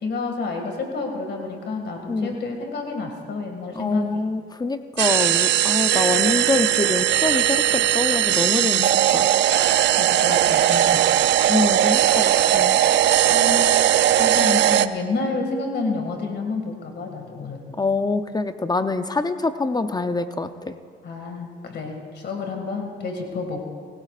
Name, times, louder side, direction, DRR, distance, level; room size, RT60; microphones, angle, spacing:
voice 1, 0.0-4.2 8.7-9.2 10.0-11.3 13.3-13.7 14.2-17.7 21.0-23.6, left 3 dB, 60° left, 2 dB, 2.1 m, -29 dB
voice 2, 2.1-2.4 3.7-8.8 9.1-9.3 11.5-12.8 17.8-20.7, left 3 dB, 20° left, 9 dB, 0.6 m, -25 dB
sound 1, 5.0-14.9, right 12 dB, 65° right, 0.5 m, -19 dB
21.0 x 16.0 x 2.5 m, 2.1 s
cardioid pair, 90°, 20 cm